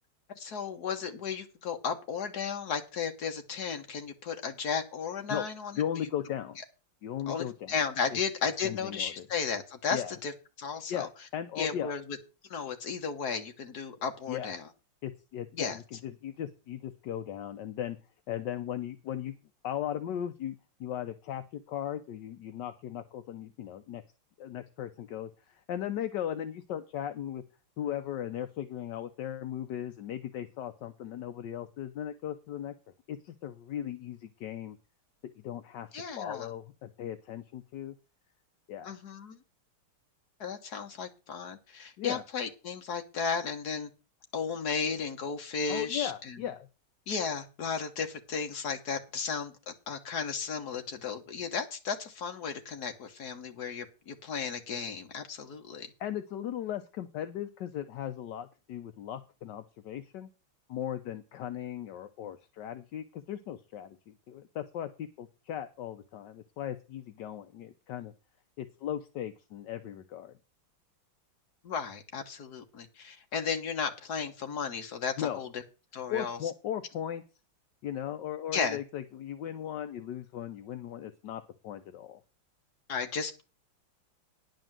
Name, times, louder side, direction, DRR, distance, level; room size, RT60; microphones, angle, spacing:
voice 1, 0.4-5.8 7.3-10.3 10.6-11.1 11.6-12.0 12.5-14.7 15.5-15.8 35.9-36.5 38.8-39.4 40.4-43.9 44.3-46.4 47.1-55.9 71.6-75.5 75.9-76.4 78.5-78.8 82.9-83.4, left 6 dB, 50° left, 5 dB, 1.8 m, -34 dB
voice 2, 5.8-6.6 7.0-7.7 8.1-8.2 8.6-9.3 9.9-10.1 10.9-11.9 14.3-14.5 15.0-18.0 18.3-19.3 19.6-24.0 24.4-27.4 27.8-32.7 33.1-34.8 35.4-38.0 38.7-39.0 42.0-42.2 45.7-46.7 56.0-60.3 60.7-68.1 68.6-70.3 75.2-75.5 76.1-77.2 77.8-82.2, left 10 dB, 65° left, 9 dB, 1.3 m, -37 dB
10.5 x 5.2 x 7.4 m, 0.32 s
omnidirectional pair, 2.3 m